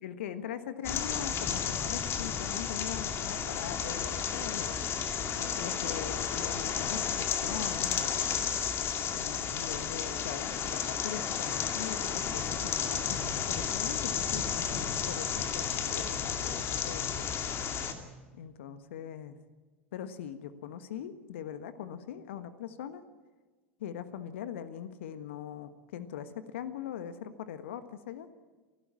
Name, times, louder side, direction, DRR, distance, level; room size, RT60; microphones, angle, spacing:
voice 1, 0.0-4.7 5.3-8.3 9.1-17.3 18.3-19.4 19.9-23.0 23.8-28.3, left 9 dB, 65° left, 12 dB, 1.4 m, -41 dB
sound 1, 0.8-17.9, left 7 dB, 40° left, 2.4 m, -32 dB
29.0 x 12.5 x 8.7 m, 1.4 s
figure-of-eight pair, 80°, 7 cm